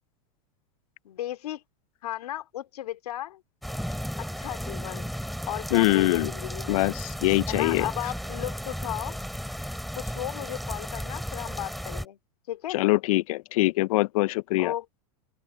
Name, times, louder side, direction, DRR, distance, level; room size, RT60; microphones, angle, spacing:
voice 1, 1.0-1.6 2.0-3.4 4.2-5.2 5.5-6.8 7.5-9.2 10.0-12.2 12.5-12.8 14.6-15.0, left 13 dB, 85° left, 2.6 m, -35 dB
sound 1, 3.6-12.1, equal, ahead, 5.7 m, -34 dB
voice 2, 5.7-6.3 6.7-7.8 12.7-14.7, left 19 dB, 65° left, 0.6 m, -23 dB
open air
supercardioid pair, 140°, 19 cm